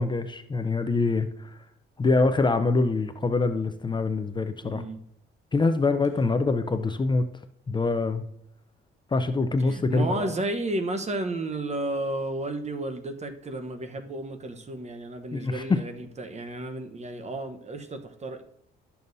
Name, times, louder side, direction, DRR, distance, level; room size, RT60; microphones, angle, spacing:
voice 1, 0.0-1.6 2.0-4.8 5.5-7.2 7.7-8.3 9.1-10.3 15.3-15.8, left 3 dB, 25° left, 9 dB, 0.6 m, -25 dB
voice 2, 4.6-5.0 9.6-18.4, right 2 dB, 35° right, 8 dB, 1.0 m, -32 dB
12.0 x 7.0 x 2.7 m, 0.72 s
cardioid pair, 90°, 20 cm